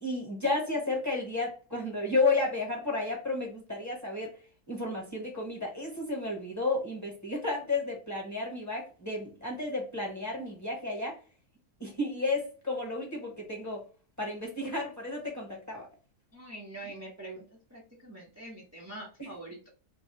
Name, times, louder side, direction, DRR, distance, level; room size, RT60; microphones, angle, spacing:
voice 1, 0.0-4.3 4.7-11.1 11.8-13.8 14.2-15.9 19.2-19.3, left 2 dB, 15° left, -2 dB, 1.0 m, -32 dB
voice 2, 16.3-17.4 17.7-19.7, right 2 dB, 15° right, -4 dB, 0.5 m, -44 dB
3.1 x 2.2 x 4.2 m, 0.37 s
omnidirectional pair, 1.6 m